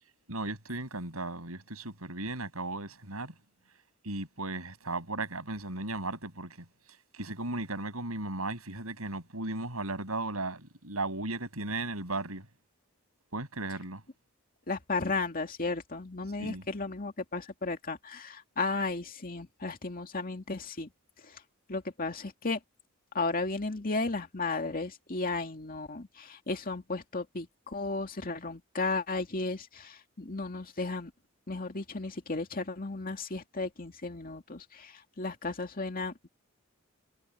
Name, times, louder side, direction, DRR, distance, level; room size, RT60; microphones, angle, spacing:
voice 1, 0.3-3.3 4.0-6.7 7.1-12.5 13.3-14.0 16.4-16.6, right 2 dB, 90° right, 7.9 m, -36 dB
voice 2, 14.7-20.9 21.2-21.4 21.7-22.6 23.1-31.1 31.5-36.3, left 3 dB, 40° left, 2.3 m, -34 dB
head